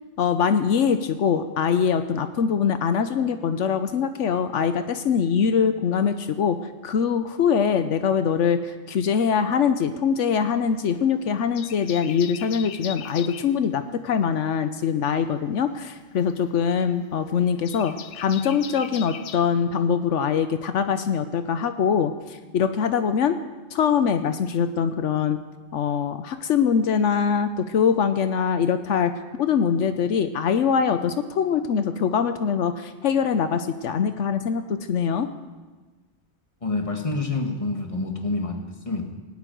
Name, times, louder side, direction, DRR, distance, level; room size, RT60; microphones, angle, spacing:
voice 1, 0.2-6.6 6.8-23.4 23.7-25.4 25.7-29.1 29.4-35.3, left 7 dB, 80° left, 9 dB, 1.1 m, -23 dB
sound 1, 10.4-11.1 11.4-13.5 15.2-19.4, left 8 dB, 60° left, 0.9 m, -40 dB
voice 2, 36.6-38.6 38.9-39.1, left 3 dB, 30° left, 3 dB, 1.7 m, -27 dB
18.0 x 8.3 x 9.3 m, 1.3 s
omnidirectional pair, 1.2 m